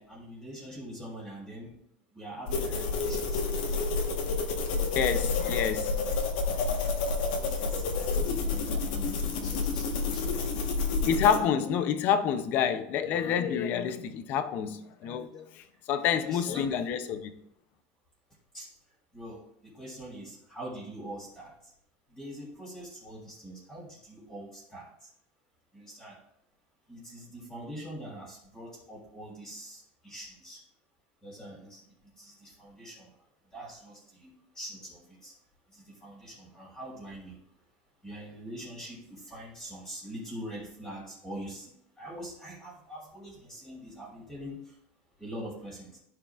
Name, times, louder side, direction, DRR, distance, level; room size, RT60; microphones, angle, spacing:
voice 1, 0.0-1.7 2.1-3.4 7.3-10.4 16.2-16.7 18.5-18.7 19.1-21.5 22.1-25.1 25.7-26.1 26.9-30.6 31.2-31.8 32.2-33.1 33.5-35.3 35.7-37.4 38.0-41.7 42.0-44.7 45.2-46.0, right 1 dB, 5° left, 3.3 m, -43 dB
sound 1, 2.5-11.4, left 4 dB, 75° left, 1.4 m, -29 dB
voice 2, 4.9-6.0 11.0-17.3, left 8 dB, 40° left, 0.6 m, -28 dB
14.0 x 4.8 x 2.5 m
supercardioid pair, 160°, 5 cm